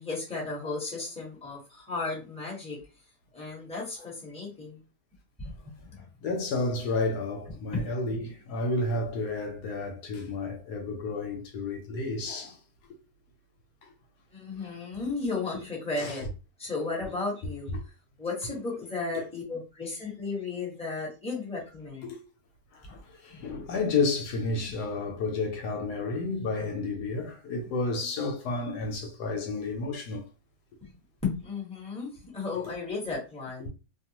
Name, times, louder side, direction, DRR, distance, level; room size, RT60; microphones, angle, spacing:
voice 1, 0.0-2.8 3.3-4.8 5.4-6.0 7.7-7.8 14.3-16.3 16.6-17.7 18.2-22.1 23.3-23.5 30.8-30.9 31.2-33.7, left 3 dB, 5° left, 1.0 m, -34 dB
voice 2, 6.2-12.6 13.8-13.9 15.5-15.6 16.0-16.2 17.7-17.8 19.1-19.2 22.0-22.2 22.7-30.3, left 3 dB, 75° left, 1.1 m, -31 dB
2.7 x 2.2 x 2.8 m
omnidirectional pair, 1.8 m